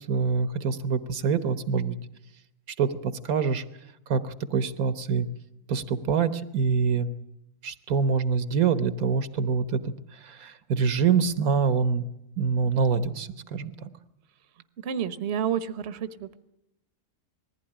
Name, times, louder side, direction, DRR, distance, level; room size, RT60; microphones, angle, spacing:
voice 1, 0.0-2.0 2.8-3.6 4.1-5.3 5.7-7.1 7.6-9.9 10.2-12.0 12.4-13.7, right 6 dB, 75° right, 12 dB, 1.4 m, -25 dB
voice 2, 14.8-16.4, right 8 dB, 50° right, 12 dB, 1.1 m, -30 dB
20.5 x 15.0 x 10.0 m, 0.86 s
omnidirectional pair, 1.5 m